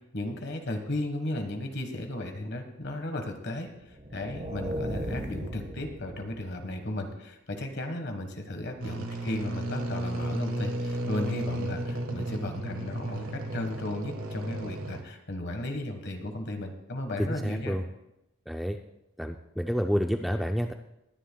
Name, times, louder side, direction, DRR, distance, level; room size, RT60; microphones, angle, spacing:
voice 1, 0.0-17.8, left 1 dB, 50° left, 5 dB, 1.4 m, -35 dB
sound 1, 3.8-6.8, equal, 35° right, 1.2 m, -37 dB
sound 2, 8.8-15.0, right 1 dB, 70° right, 1.4 m, -33 dB
voice 2, 17.2-17.8 18.5-18.8 19.2-20.7, equal, ahead, 4 dB, 0.3 m, -29 dB
20.5 x 10.0 x 2.3 m, 0.86 s
head